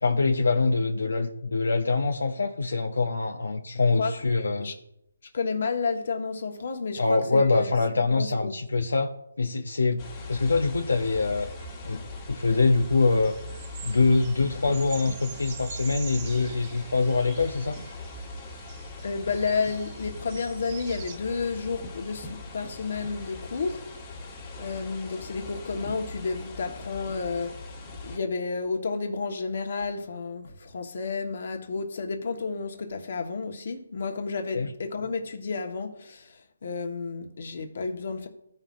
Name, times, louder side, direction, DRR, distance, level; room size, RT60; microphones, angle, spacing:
voice 1, 0.0-4.7 7.0-9.1 9.4-11.5 11.8-13.4 13.8-17.8 34.5-34.7, left 3 dB, 80° left, 0.8 m, -24 dB
voice 2, 3.7-4.7 5.3-7.7 8.1-8.5 19.0-23.8 24.6-38.3, left 4 dB, 55° left, 1.4 m, -31 dB
sound 1, 10.0-28.2, left 2 dB, 25° left, 1.7 m, -40 dB
sound 2, 10.3-21.2, right 5 dB, 25° right, 0.9 m, -46 dB
16.0 x 5.5 x 2.6 m
hypercardioid pair, 160°, 0 cm